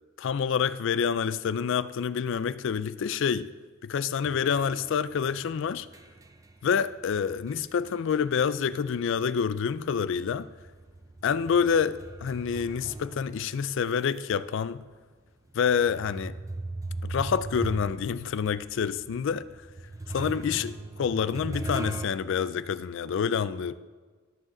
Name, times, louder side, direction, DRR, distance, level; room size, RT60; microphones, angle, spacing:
voice 1, 0.2-3.5 3.8-5.9 6.6-10.5 11.2-14.8 15.5-16.4 17.0-19.5 20.1-23.7, left 7 dB, 65° left, 0.3 m, -27 dB
sound 1, 4.2-9.2 9.5-14.2 14.8-14.9 15.7-22.1, right 2 dB, 15° right, 0.4 m, -39 dB
13.5 x 6.5 x 3.8 m
head